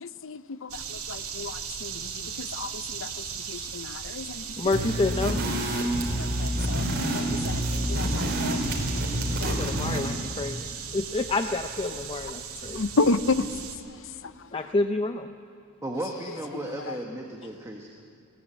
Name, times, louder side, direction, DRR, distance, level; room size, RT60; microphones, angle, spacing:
voice 1, 0.0-0.4 1.1-1.5 1.8-1.9 2.6-2.7 3.7-4.2 6.4-6.8 7.1-7.2 7.9-8.6 9.4-9.5 12.8-13.4, left 3 dB, 65° left, 13 dB, 0.7 m, -28 dB
sound 1, 0.7-13.8, right 7 dB, 80° right, 2.2 m, -37 dB
voice 2, 4.6-5.4 9.4-10.7 10.9-12.9 14.5-15.3, left 2 dB, 25° left, 7 dB, 0.5 m, -28 dB
sound 2, 4.7-10.2, equal, 50° right, 3.9 m, -28 dB
voice 3, 15.8-17.9, right 1 dB, 15° right, 0 dB, 1.4 m, -35 dB
20.5 x 16.5 x 8.3 m, 2.6 s
head